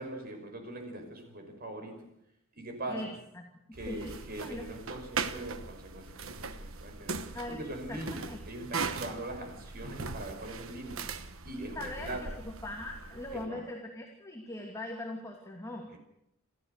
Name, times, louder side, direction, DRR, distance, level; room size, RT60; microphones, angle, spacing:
voice 1, 0.0-1.9 2.5-3.2 3.7-7.2 7.5-11.0 11.4-12.2 13.3-13.7 15.9-16.0, right 1 dB, 50° right, 4 dB, 5.6 m, -41 dB
sound 1, 3.7-13.5, right 4 dB, 80° right, 1.2 m, -40 dB
voice 2, 3.8-4.6 7.3-7.6 7.9-8.4 11.7-16.0, left 1 dB, 15° left, 0 dB, 2.6 m, -41 dB
28.5 x 14.0 x 6.7 m, 0.80 s
head